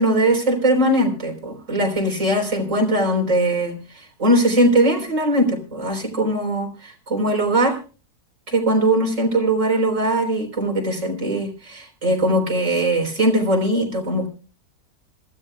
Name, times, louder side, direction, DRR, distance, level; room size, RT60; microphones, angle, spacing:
voice 1, 0.0-3.8 4.2-7.8 8.5-14.3, right 1 dB, 55° right, 3 dB, 4.2 m, -20 dB
26.0 x 13.5 x 2.2 m, 0.36 s
omnidirectional pair, 1.6 m